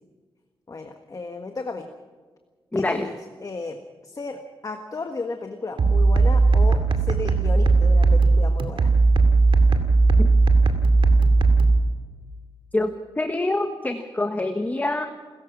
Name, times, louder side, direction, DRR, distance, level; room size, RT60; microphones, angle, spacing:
voice 1, 0.7-1.9 2.7-3.1 3.4-3.8 4.0-8.9, left 3 dB, 40° left, 5 dB, 1.5 m, -34 dB
voice 2, 2.7-3.1 10.2-10.3 12.7-12.9 13.2-15.1, left 2 dB, 20° left, 6 dB, 1.2 m, -25 dB
sound 1, 5.8-11.8, right 3 dB, 70° right, 2.4 m, -17 dB
28.5 x 15.0 x 6.1 m, 1.5 s
wide cardioid pair, 125°, 9 cm